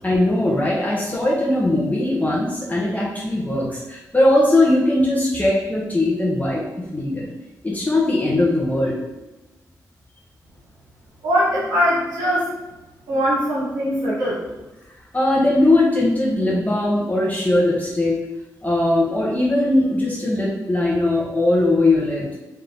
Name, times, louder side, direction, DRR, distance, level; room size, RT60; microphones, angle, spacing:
voice 1, 0.0-7.3 7.6-8.9 15.1-18.2 18.6-22.3, left 1 dB, 20° left, -5 dB, 1.0 m, -20 dB
voice 2, 11.2-12.5 13.1-14.4, equal, 85° right, -7 dB, 1.1 m, -21 dB
3.4 x 2.7 x 3.8 m, 1.0 s
supercardioid pair, 45°, 7 cm